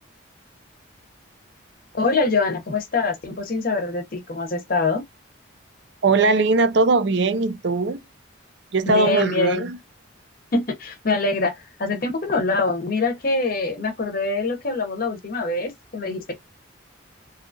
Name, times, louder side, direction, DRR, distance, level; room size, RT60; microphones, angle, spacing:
voice 1, 1.9-5.0 8.9-9.7 10.5-16.4, left 3 dB, 45° left, 0.7 m, -24 dB
voice 2, 6.0-8.0 8.7-9.8, right 3 dB, 55° right, 0.4 m, -20 dB
2.7 x 2.3 x 2.5 m
head